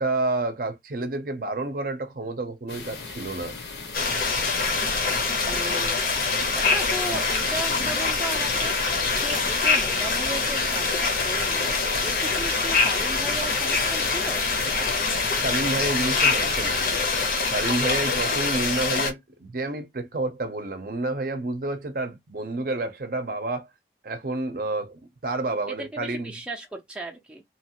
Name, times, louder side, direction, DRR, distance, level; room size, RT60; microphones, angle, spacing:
voice 1, 0.0-3.6 15.4-16.8 17.5-23.7 24.0-26.3, right 2 dB, 50° right, 0.6 m, -29 dB
sound 1, 2.7-17.2, left 4 dB, 70° left, 1.0 m, -38 dB
sound 2, 3.9-19.1, left 4 dB, 50° left, 0.8 m, -24 dB
voice 2, 5.2-6.0 6.5-14.5 25.7-27.4, right 2 dB, 5° right, 0.5 m, -36 dB
2.9 x 2.4 x 2.8 m
head